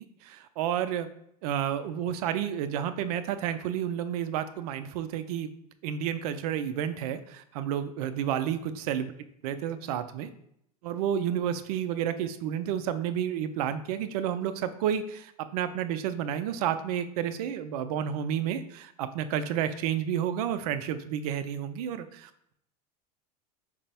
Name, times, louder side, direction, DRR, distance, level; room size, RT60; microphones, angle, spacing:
voice 1, 0.2-1.1 1.4-5.5 5.8-9.1 9.4-10.3 10.8-22.5, right 9 dB, 70° right, 11 dB, 0.4 m, -31 dB
4.4 x 2.0 x 4.2 m, 0.72 s
hypercardioid pair, 105°, 20 cm